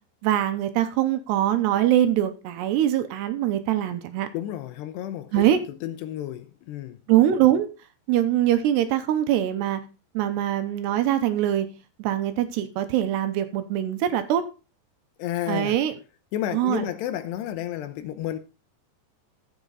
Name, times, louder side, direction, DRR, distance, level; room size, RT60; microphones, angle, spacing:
voice 1, 0.2-4.3 5.3-5.6 7.1-7.7 8.1-9.8 10.1-11.7 12.0-14.4 15.5-15.9 16.5-16.9, right 12 dB, 75° right, 2.8 m, -23 dB
voice 2, 4.3-7.0 15.2-15.8 16.3-18.4, left 12 dB, 80° left, 2.7 m, -31 dB
12.5 x 7.9 x 4.0 m
omnidirectional pair, 5.2 m